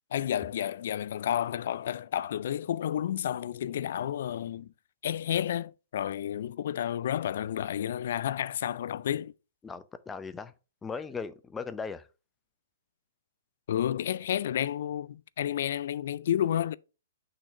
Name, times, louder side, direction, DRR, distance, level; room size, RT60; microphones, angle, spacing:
voice 1, 0.1-4.7 5.0-9.3 13.7-16.8, left 10 dB, 65° left, 0.3 m, -31 dB
voice 2, 9.6-10.5 10.8-12.1, left 5 dB, 10° left, 0.5 m, -38 dB
6.4 x 2.9 x 5.6 m
hypercardioid pair, 140°, 0 cm